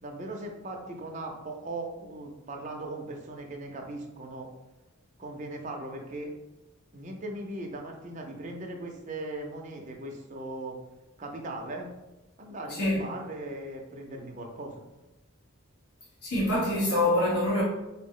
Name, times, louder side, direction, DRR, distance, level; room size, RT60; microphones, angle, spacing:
voice 1, 0.0-4.5 5.2-6.3 6.9-10.8 11.2-11.9 12.4-14.7, right 2 dB, 35° right, 0.5 m, -38 dB
voice 2, 12.7-13.0 16.2-17.6, left 1 dB, 90° left, 1.1 m, -25 dB
4.3 x 2.0 x 3.6 m
head